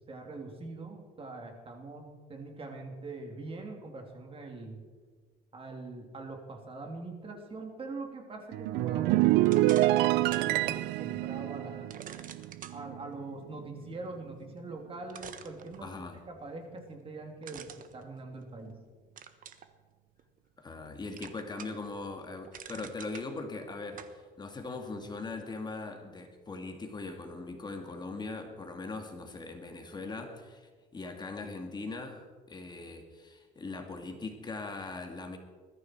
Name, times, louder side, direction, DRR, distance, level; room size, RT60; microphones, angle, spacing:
voice 1, 0.1-4.8 5.5-11.9 12.7-16.0 16.3-18.8, right 3 dB, 35° right, 2 dB, 3.3 m, -43 dB
sound 1, 8.5-13.1 13.4-13.7, right 17 dB, 90° right, 0.5 m, -27 dB
sound 2, 9.4-10.5 11.0-11.1 11.9-12.8 14.6-14.7 15.1-16.2 17.4-18.7 19.2-19.7 20.2-20.9 21.2-21.9 22.2-23.3 24.0-24.2, right 8 dB, 50° right, 1.3 m, -46 dB
voice 2, 15.8-16.2 20.6-35.4, left 3 dB, 25° left, 3 dB, 2.2 m, -40 dB
20.5 x 13.5 x 4.7 m, 1.5 s
cardioid pair, 110°, 17 cm